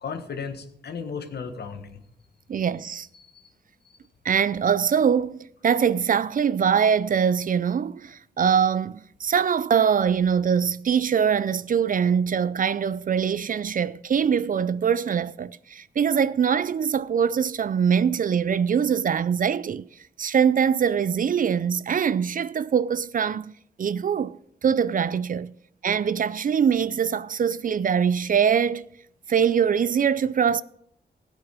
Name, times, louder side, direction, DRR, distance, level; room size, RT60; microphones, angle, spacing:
voice 1, 0.0-2.0 3.2-3.5 3.9-4.0, left 5 dB, 70° left, 1.5 m, -35 dB
voice 2, 2.5-3.1 4.2-19.9 20.2-23.5 23.8-24.4 24.6-25.5 25.8-28.9 29.3-30.6, right 7 dB, 50° right, 0.4 m, -23 dB
15.5 x 8.2 x 5.0 m
wide cardioid pair, 100°, 17 cm